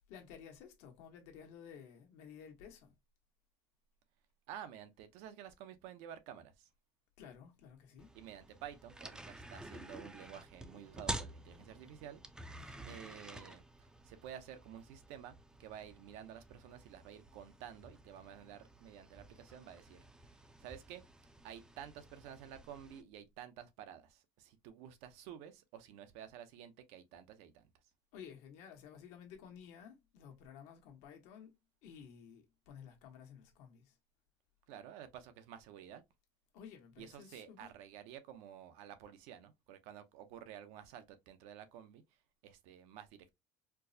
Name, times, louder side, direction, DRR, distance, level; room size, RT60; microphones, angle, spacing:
voice 1, 0.1-2.9 7.2-8.1 12.6-13.0 28.1-31.5 31.8-34.0 36.5-37.7, left 7 dB, 75° left, 1.2 m, -54 dB
voice 2, 4.5-6.7 8.1-12.2 12.9-20.0 20.6-21.0 21.4-27.7 34.7-36.0 37.0-42.0 42.4-43.3, right 9 dB, 75° right, 0.7 m, -51 dB
sound 1, 8.0-23.0, right 1 dB, 5° right, 0.4 m, -50 dB
4.4 x 2.0 x 2.6 m
cardioid pair, 130°, 11 cm